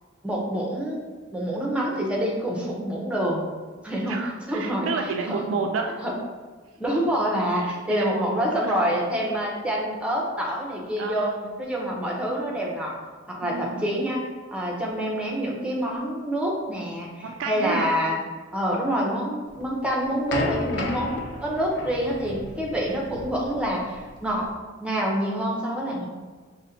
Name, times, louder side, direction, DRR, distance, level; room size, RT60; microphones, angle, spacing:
voice 1, 0.2-1.0 1.3-3.4 3.8-4.2 4.5-4.9 5.3-5.4 6.0-6.1 6.8-11.3 11.6-12.9 13.3-14.2 14.5-18.2 18.5-24.5 24.8-26.1, equal, 5° right, -3 dB, 0.6 m, -27 dB
voice 2, 4.1-5.9 7.6-8.9 11.0-11.5 13.4-13.8 17.2-17.9, right 4 dB, 85° right, 3 dB, 0.3 m, -31 dB
sound 1, 19.5-24.5, left 2 dB, 60° left, 0.4 m, -33 dB
5.2 x 2.1 x 2.7 m, 1.4 s
head